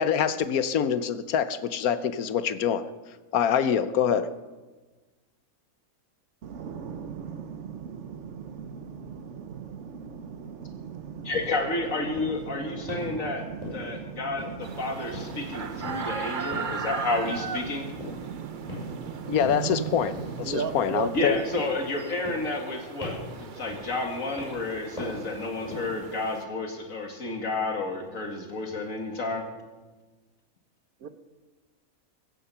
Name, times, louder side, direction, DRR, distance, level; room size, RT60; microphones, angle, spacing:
voice 1, 0.0-2.9 3.3-4.3 19.3-21.4, left 8 dB, 85° left, 13 dB, 1.3 m, -25 dB
sound 1, 6.4-21.4, right 7 dB, 60° right, 1.1 m, -39 dB
voice 2, 11.2-13.4 13.7-17.9 21.1-29.4, left 2 dB, 65° left, 3 dB, 2.6 m, -31 dB
sound 2, 11.3-11.6 12.2-12.4 12.9-13.2 13.6-14.0 14.4-14.8 15.1-15.5 15.8-16.1 16.5-16.8 17.3-17.5 18.0-18.3 18.7-19.0 19.4-19.7 20.1-20.5 20.9-21.3 21.6-21.9 22.2-22.7 23.0-23.4 23.7-24.0 24.4-24.7 25.0-25.3 25.6-26.0, left 2 dB, 25° left, 6.6 m, -39 dB
sound 3, 14.6-26.5, right 6 dB, 45° right, 0.8 m, -39 dB
voice 3, 20.4-21.1 21.5-21.6 31.0-31.1, right 6 dB, 85° right, 10 dB, 1.5 m, -32 dB
15.5 x 15.5 x 5.6 m, 1.3 s
omnidirectional pair, 1.5 m